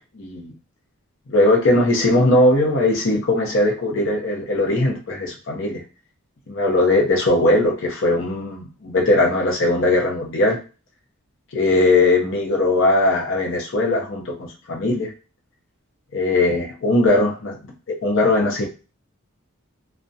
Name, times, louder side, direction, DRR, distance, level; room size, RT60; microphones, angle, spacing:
voice 1, 0.2-0.5 1.3-5.8 6.5-10.6 11.5-15.1 16.1-17.6 17.9-18.7, left 2 dB, 60° left, 1 dB, 0.6 m, -19 dB
2.3 x 2.1 x 2.6 m, 0.33 s
head